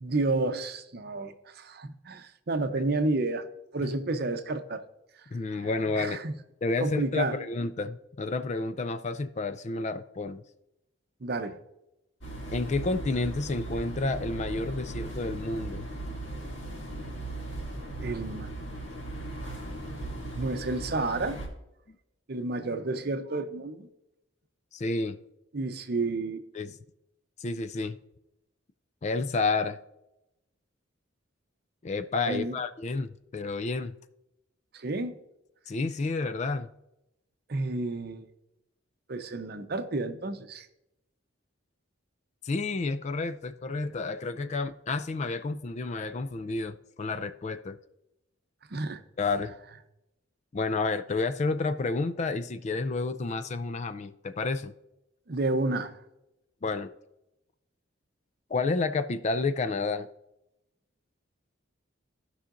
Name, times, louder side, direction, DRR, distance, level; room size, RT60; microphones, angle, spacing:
voice 1, 0.0-3.4 3.7-4.8 5.5-5.7 5.9-6.3 6.8-7.4 11.2-11.6 18.0-18.5 20.3-21.4 22.3-23.9 25.5-26.4 32.3-32.6 34.7-35.2 37.5-38.3 39.1-40.7 48.7-49.0 55.3-56.0, right 2 dB, 50° right, 8 dB, 0.7 m, -30 dB
voice 2, 5.3-6.2 6.6-10.4 12.5-15.9 21.9-22.0 24.7-25.2 26.5-26.8 27.4-28.0 29.0-29.8 31.8-33.9 35.7-36.7 42.4-47.8 49.2-49.5 50.5-54.7 56.6-56.9 58.5-60.1, left 3 dB, 35° left, 11 dB, 0.3 m, -30 dB
sound 1, 12.2-21.5, right 2 dB, 60° left, 2.2 m, -38 dB
16.5 x 5.6 x 2.5 m, 0.88 s
head